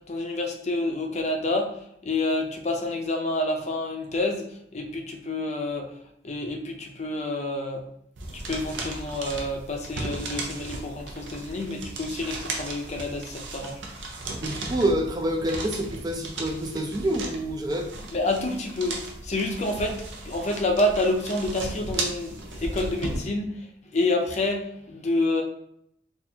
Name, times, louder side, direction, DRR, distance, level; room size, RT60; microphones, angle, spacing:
voice 1, 0.1-5.9 6.2-7.8 8.5-13.8 18.1-23.7 23.9-25.4, left 2 dB, 40° left, 3 dB, 0.5 m, -28 dB
sound 1, 8.2-23.2, right 2 dB, 80° right, 0.7 m, -36 dB
voice 2, 14.4-17.9, right 1 dB, 20° right, 3 dB, 0.4 m, -27 dB
4.1 x 2.4 x 2.8 m, 0.72 s
head